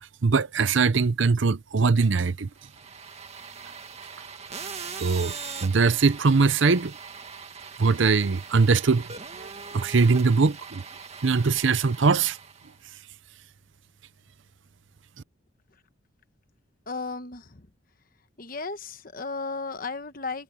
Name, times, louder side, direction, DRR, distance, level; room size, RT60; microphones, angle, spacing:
voice 1, 0.2-2.5 5.0-5.3 5.6-6.9 7.8-9.1 9.4-9.5 9.7-10.8 11.2-12.4, right 4 dB, 65° right, 0.6 m, -21 dB
sound 1, 2.6-12.8, right 5 dB, 30° right, 2.0 m, -41 dB
voice 2, 16.9-17.7 18.4-20.4, left 4 dB, 45° left, 1.2 m, -34 dB
head